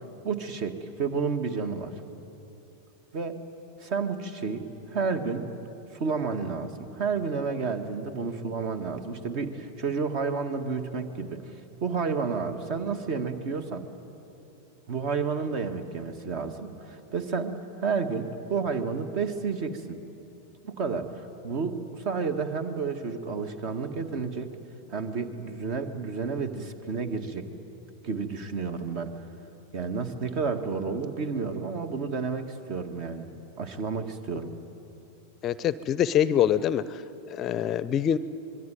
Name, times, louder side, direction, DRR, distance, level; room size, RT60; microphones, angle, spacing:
voice 1, 0.2-1.9 3.1-3.4 3.8-5.5 5.9-11.4 11.8-13.9 14.9-20.0 20.6-24.5 24.9-27.5 28.0-29.1 29.7-33.3 33.6-34.5, right 5 dB, 45° right, 9 dB, 1.9 m, -31 dB
voice 2, 35.4-37.0 37.3-38.2, left 10 dB, 30° left, 17 dB, 0.6 m, -25 dB
25.5 x 22.0 x 9.3 m, 2.9 s
figure-of-eight pair, 90°, 0 cm